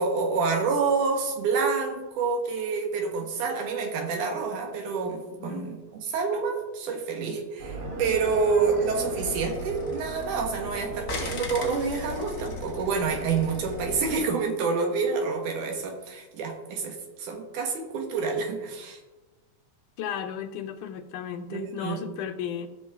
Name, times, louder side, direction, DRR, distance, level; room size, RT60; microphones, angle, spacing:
voice 1, 0.0-19.0 21.5-22.1, right 4 dB, 80° right, 3 dB, 2.8 m, -28 dB
voice 2, 5.4-5.7 20.0-22.7, left 8 dB, 85° left, 8 dB, 2.2 m, -34 dB
sound 1, 7.6-14.2, right 1 dB, 55° right, 2.5 m, -37 dB
sound 2, 9.2-10.6 11.1-14.3, left 4 dB, 50° left, 1.2 m, -41 dB
16.0 x 6.2 x 3.5 m, 1.2 s
omnidirectional pair, 3.5 m